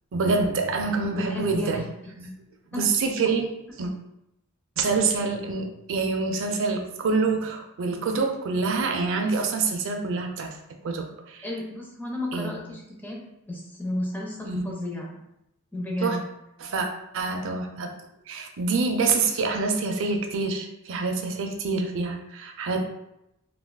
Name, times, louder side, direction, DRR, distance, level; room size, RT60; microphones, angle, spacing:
voice 1, 0.1-1.8 2.2-2.3 2.7-3.5 3.8-3.9 4.8-10.5 10.8-11.4 12.3-12.7 14.5-14.7 16.0-16.2 16.6-16.9 17.1-17.9 18.3-22.9, right 4 dB, 60° right, 4 dB, 0.4 m, -26 dB
voice 2, 1.1-1.9 2.7-2.9 11.4-13.2 13.5-15.1 15.7-16.3, left 1 dB, 10° left, -2 dB, 0.5 m, -33 dB
3.4 x 2.3 x 2.2 m, 0.84 s
head